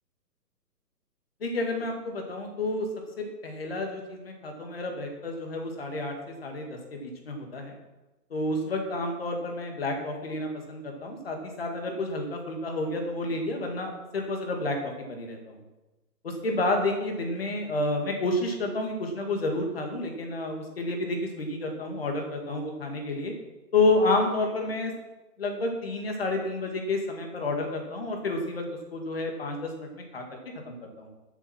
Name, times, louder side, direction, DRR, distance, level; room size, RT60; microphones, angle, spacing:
voice 1, 1.4-2.9 3.2-7.8 8.3-15.6 16.2-23.3 23.7-24.9 25.4-28.6 28.9-30.4 30.7-31.1, left 2 dB, 35° left, 2 dB, 2.1 m, -30 dB
12.5 x 7.6 x 6.0 m, 1.1 s
hypercardioid pair, 175°, 50 cm